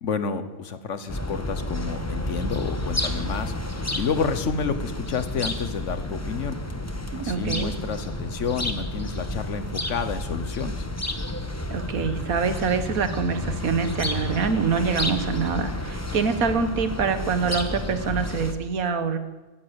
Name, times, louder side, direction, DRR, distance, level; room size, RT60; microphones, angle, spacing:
voice 1, 0.0-3.5 3.9-6.6 7.1-10.9, left 5 dB, 60° left, 11 dB, 1.3 m, -30 dB
sound 1, 1.1-18.5, left 1 dB, 15° left, 0.9 m, -31 dB
voice 2, 7.1-7.7 11.7-19.2, right 5 dB, 75° right, 10 dB, 1.6 m, -25 dB
16.0 x 10.0 x 8.1 m, 1.2 s
omnidirectional pair, 1.5 m